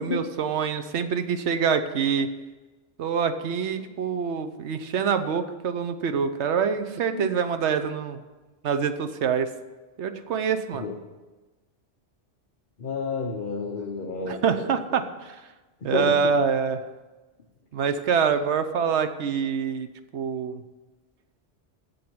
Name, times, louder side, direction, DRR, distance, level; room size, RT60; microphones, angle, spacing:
voice 1, 0.0-2.3 3.0-8.2 8.6-9.5 10.0-10.9 14.3-15.4 15.8-16.8 17.7-19.9 20.1-20.6, right 6 dB, 70° right, 9 dB, 1.0 m, -25 dB
voice 2, 12.8-15.0 15.8-16.2, left 4 dB, 45° left, 1 dB, 1.0 m, -31 dB
7.8 x 7.2 x 7.8 m, 1.2 s
omnidirectional pair, 1.2 m